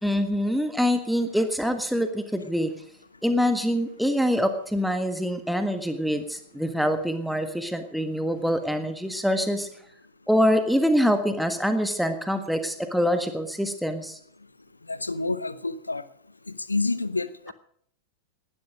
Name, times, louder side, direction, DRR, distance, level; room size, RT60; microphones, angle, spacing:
voice 1, 0.0-2.7 3.2-9.7 10.3-14.2, equal, ahead, 7 dB, 1.6 m, -25 dB
voice 2, 14.9-16.0 16.7-17.5, left 3 dB, 80° left, 17 dB, 0.7 m, -28 dB
19.0 x 12.5 x 5.1 m, 0.63 s
figure-of-eight pair, 90°, 0 cm